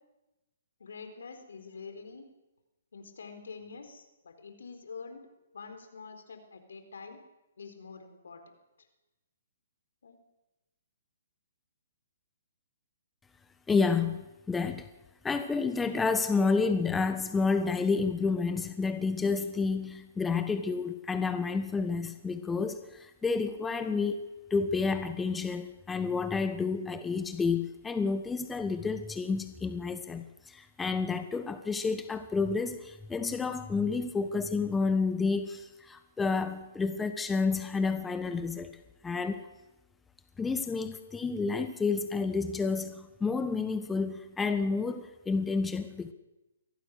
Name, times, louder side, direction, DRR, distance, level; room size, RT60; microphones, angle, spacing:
voice 1, 0.8-2.3 2.9-5.3 5.5-7.2 7.6-8.9 10.0-10.2, left 5 dB, 75° left, 7 dB, 4.3 m, -46 dB
voice 2, 13.7-14.9 15.2-24.2 24.5-38.7 39.0-39.5 40.4-46.1, left 4 dB, 10° left, 9 dB, 1.2 m, -30 dB
23.5 x 17.0 x 6.6 m, 1.0 s
hypercardioid pair, 135°, 0 cm